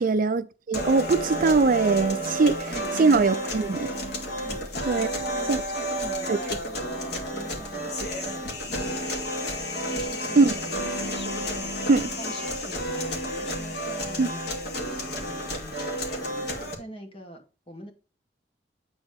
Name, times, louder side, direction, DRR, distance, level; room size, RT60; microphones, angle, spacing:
voice 1, 0.0-2.7 3.0-3.9 4.9-5.1 5.5-5.6 6.3-6.4 10.4-10.5 11.9-12.1 14.2-14.3, right 4 dB, 50° right, 0.4 m, -21 dB
sound 1, 0.7-16.7, equal, 65° left, 2.4 m, -31 dB
voice 2, 4.5-9.0 9.9-11.9 12.2-14.7 15.2-15.9 16.7-17.9, right 1 dB, 30° left, 2.2 m, -44 dB
9.6 x 4.0 x 5.1 m
head